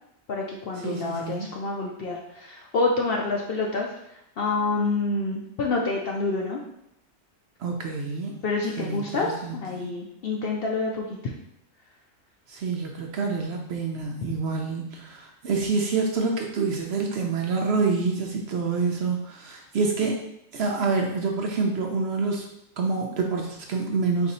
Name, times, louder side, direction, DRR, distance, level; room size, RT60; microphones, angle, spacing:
voice 1, 0.3-3.9 4.4-6.6 8.4-11.2, left 3 dB, 65° left, -1 dB, 0.6 m, -27 dB
voice 2, 0.8-1.5 7.6-8.4 8.8-9.6 12.5-20.2 20.5-22.4 22.8-24.3, right 4 dB, 65° right, 2 dB, 0.7 m, -27 dB
4.1 x 2.6 x 4.0 m, 0.79 s
omnidirectional pair, 1.4 m